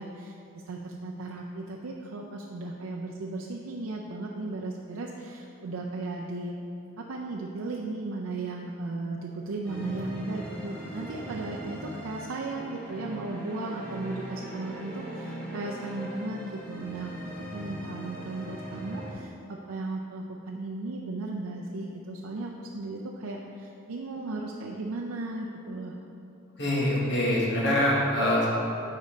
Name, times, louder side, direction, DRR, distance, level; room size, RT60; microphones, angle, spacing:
voice 1, 0.0-6.6 7.0-26.0, right 2 dB, 90° right, -1 dB, 0.5 m, -36 dB
sound 1, 9.6-19.1, right 1 dB, 5° left, 1.1 m, -40 dB
voice 2, 26.6-28.5, left 1 dB, 55° left, -5 dB, 1.5 m, -24 dB
7.2 x 5.3 x 3.8 m, 2.7 s
head